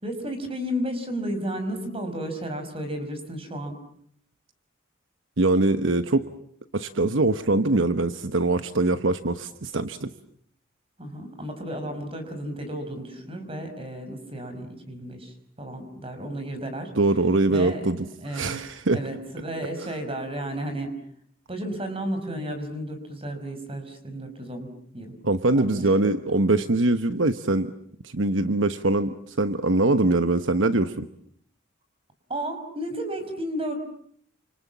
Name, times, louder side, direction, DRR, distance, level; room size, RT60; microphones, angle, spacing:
voice 1, 0.0-3.8 11.0-16.9 17.5-17.9 18.2-18.5 18.9-20.9 21.5-25.1 25.6-25.8 32.3-33.8, right 1 dB, 25° right, 7 dB, 5.5 m, -33 dB
voice 2, 5.4-6.3 6.7-10.1 17.0-18.0 18.3-19.0 19.8-19.9 25.2-27.7 28.0-31.1, right 2 dB, 65° right, 10 dB, 1.1 m, -23 dB
29.5 x 27.0 x 7.4 m, 0.65 s
head